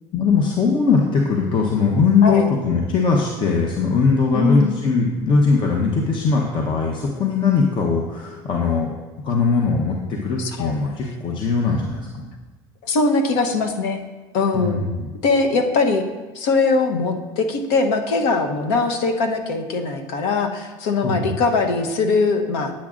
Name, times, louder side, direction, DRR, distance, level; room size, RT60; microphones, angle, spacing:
voice 1, 0.1-8.9 9.2-12.3 14.5-15.1 21.0-21.3, left 4 dB, 45° left, 0 dB, 0.9 m, -20 dB
voice 2, 4.3-4.7 10.4-10.7 12.8-14.0 14.3-14.8 15.2-16.0 16.3-22.7, left 3 dB, 80° left, 5 dB, 0.9 m, -21 dB
10.0 x 7.3 x 2.5 m, 1.3 s
supercardioid pair, 100°, 12 cm